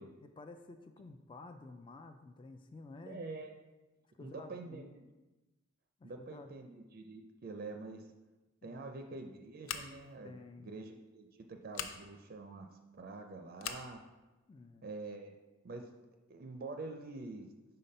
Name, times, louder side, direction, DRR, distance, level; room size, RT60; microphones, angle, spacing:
voice 1, 0.2-3.2 4.1-4.9 6.0-6.5 8.6-8.9 10.2-10.7 14.5-14.8, left 3 dB, 25° left, 7 dB, 0.3 m, -52 dB
voice 2, 3.0-3.5 4.2-5.1 6.0-8.1 8.6-12.7 13.0-14.0 14.8-15.4 15.6-15.9 16.3-17.5, right 3 dB, 50° right, 5 dB, 0.4 m, -46 dB
Scissors, 9.6-10.2 11.7-12.0 13.6-13.9, left 7 dB, 80° left, 0.5 m, -41 dB
5.7 x 3.9 x 5.3 m, 1.1 s
head